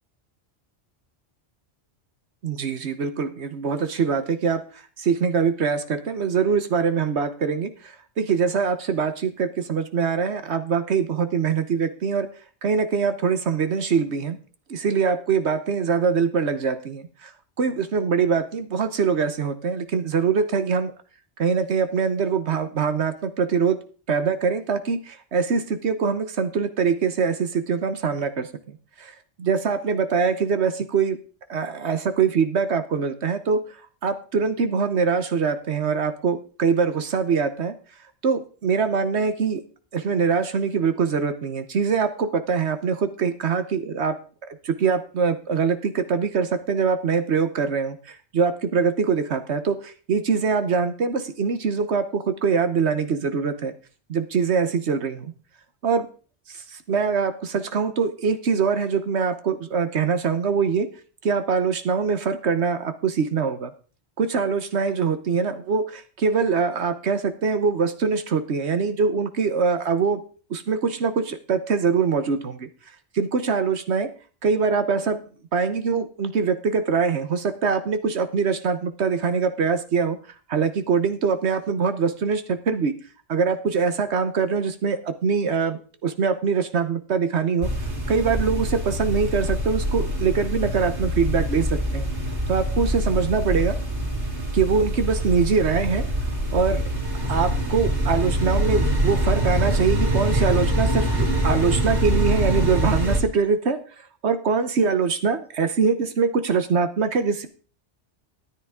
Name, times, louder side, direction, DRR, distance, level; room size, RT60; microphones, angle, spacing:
voice 1, 2.4-4.6 5.0-12.3 12.6-14.4 14.7-17.3 17.6-20.9 21.4-23.8 24.1-31.2 31.5-33.6 34.0-37.7 38.2-39.6 39.9-44.2 44.6-53.7 54.1-55.3 55.8-56.1 56.5-60.9 61.2-63.7 64.2-70.2 70.5-72.7 73.1-74.1 74.4-75.2 75.5-80.2 80.5-83.0 83.3-92.1 92.5-93.8 94.5-96.0 96.5-96.8 97.2-107.5, right 5 dB, 70° right, 9 dB, 1.2 m, -23 dB
sound 1, 87.6-103.2, right 1 dB, 55° right, 3.7 m, -24 dB
13.0 x 10.5 x 3.6 m, 0.39 s
omnidirectional pair, 1.2 m